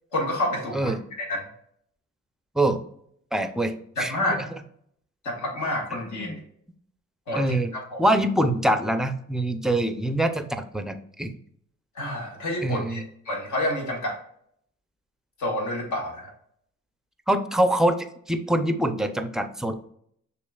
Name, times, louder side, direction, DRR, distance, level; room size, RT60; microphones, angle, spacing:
voice 1, 0.1-1.5 4.0-4.4 5.2-6.4 7.3-8.0 12.0-14.2 15.4-16.3, left 1 dB, 75° left, 0 dB, 1.7 m, -29 dB
voice 2, 3.3-4.5 6.2-6.3 7.3-7.7 8.0-11.3 12.6-13.0 17.3-17.9 18.3-19.8, right 1 dB, ahead, 9 dB, 0.4 m, -24 dB
6.4 x 3.0 x 2.3 m, 0.68 s
cardioid pair, 90°, 30 cm